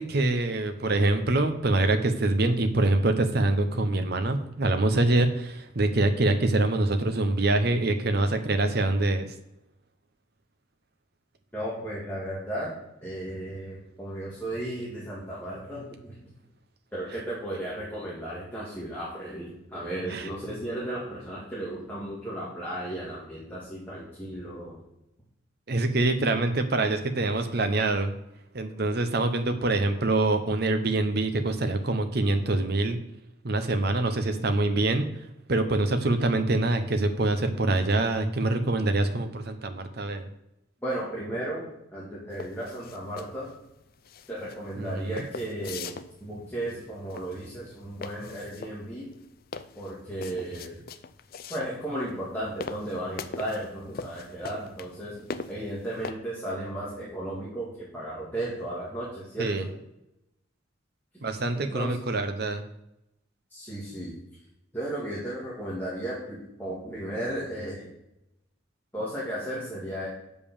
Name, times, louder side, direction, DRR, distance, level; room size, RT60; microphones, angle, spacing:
voice 1, 0.0-9.3 20.1-20.3 25.7-28.1 28.5-33.0 33.4-35.0 35.5-40.3 44.8-45.3 59.4-59.7 61.2-62.6, right 2 dB, 50° right, 7 dB, 0.9 m, -25 dB
voice 2, 11.5-12.7 13.0-16.2 16.9-24.8 40.8-41.7 41.9-43.5 44.3-45.9 46.2-49.1 49.8-50.8 51.5-55.2 55.5-59.7 61.6-62.0 63.5-64.1 64.7-67.9 68.9-70.1, right 1 dB, 10° left, -8 dB, 2.1 m, -35 dB
sound 1, 42.3-56.1, left 5 dB, 50° left, 0.4 m, -41 dB
6.8 x 5.4 x 7.0 m, 0.87 s
head